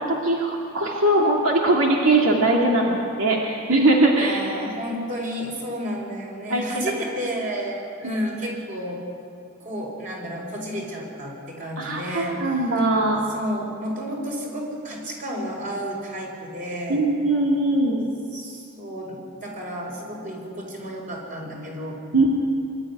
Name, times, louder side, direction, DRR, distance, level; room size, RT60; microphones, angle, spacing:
voice 1, 0.0-4.4 6.5-6.6 8.0-8.1 11.8-13.2 16.9-18.1 22.1-22.3, right 2 dB, 80° right, -2 dB, 2.3 m, -21 dB
voice 2, 4.2-9.0 9.6-12.4 13.3-17.0 18.3-22.0, equal, 40° right, -1 dB, 5.2 m, -31 dB
24.0 x 12.5 x 9.8 m, 2.5 s
head